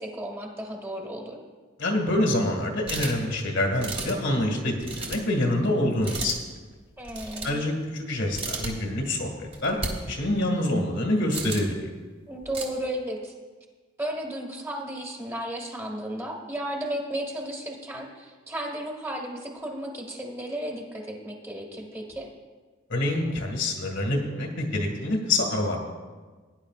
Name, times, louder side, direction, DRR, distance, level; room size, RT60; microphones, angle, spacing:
voice 1, 0.0-1.4 7.0-7.6 12.3-13.3 14.0-22.3, right 1 dB, 15° right, 0 dB, 1.6 m, -34 dB
voice 2, 1.8-6.4 7.4-9.8 10.1-11.9 22.9-25.8, left 1 dB, 75° left, 1 dB, 2.0 m, -26 dB
sound 1, 2.9-3.3 3.8-4.2 4.8-5.2 6.0-6.3 7.0-7.6 8.3-8.7 9.5-9.9 11.3-11.7 12.4-12.6, right 3 dB, 30° right, 1.6 m, -34 dB
17.5 x 10.0 x 2.4 m, 1.4 s
head